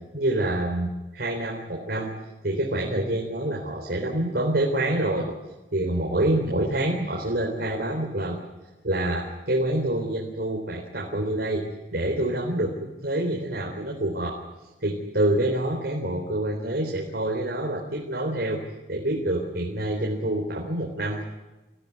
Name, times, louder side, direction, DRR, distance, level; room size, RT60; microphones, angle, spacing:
voice 1, 0.1-2.1 2.4-5.3 5.7-8.4 8.8-11.6 11.9-14.4 14.8-18.6 18.9-21.2, right 1 dB, 60° right, -1 dB, 4.0 m, -26 dB
25.0 x 16.0 x 9.8 m, 1.1 s
head